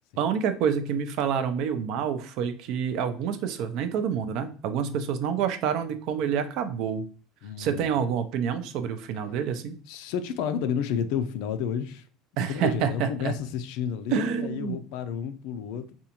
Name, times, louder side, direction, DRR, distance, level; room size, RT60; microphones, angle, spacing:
voice 1, 0.2-7.0 7.6-9.8 12.4-13.3 14.1-14.8, right 7 dB, 50° right, 0.5 m, -28 dB
voice 2, 7.4-8.0 9.9-12.0 12.4-15.9, left 8 dB, 65° left, 0.4 m, -31 dB
5.0 x 2.3 x 2.8 m
cardioid pair, 170°, 0 cm